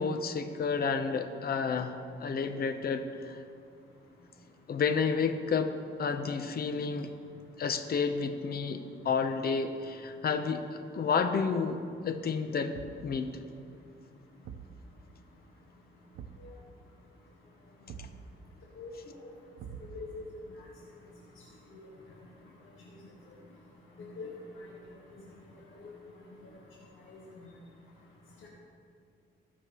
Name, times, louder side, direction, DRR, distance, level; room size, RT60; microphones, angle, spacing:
voice 1, 0.0-3.4 4.7-5.7 6.0-7.1 7.6-11.8 12.0-12.7 13.0-13.3, left 5 dB, 50° left, 7 dB, 0.7 m, -30 dB
Thump thud, 12.7-13.2 14.4-14.8 16.1-16.5 17.9-18.2 19.6-20.2, right 7 dB, 80° right, 0.7 m, -45 dB
voice 2, 19.8-20.2 21.7-21.8 24.0-24.3 24.6-24.7 25.1-25.2 25.8-25.9 27.1-27.5, left 4 dB, 80° left, -4 dB, 1.6 m, -44 dB
19.0 x 6.5 x 3.0 m, 2.3 s
cardioid pair, 80°, 20 cm